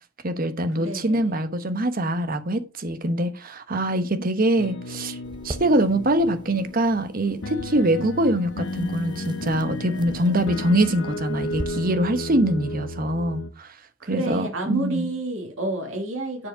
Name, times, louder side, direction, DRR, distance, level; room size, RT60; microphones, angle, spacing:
voice 1, 0.2-5.2 5.4-13.8 14.1-15.0, right 1 dB, 45° right, 1.1 m, -23 dB
voice 2, 0.8-1.4 14.0-16.5, right 1 dB, 85° right, 2.7 m, -29 dB
sound 1, 4.6-13.5, left 2 dB, 75° left, 0.8 m, -34 dB
sound 2, 5.2-11.7, right 1 dB, 20° right, 0.8 m, -42 dB
9.6 x 4.9 x 5.1 m
head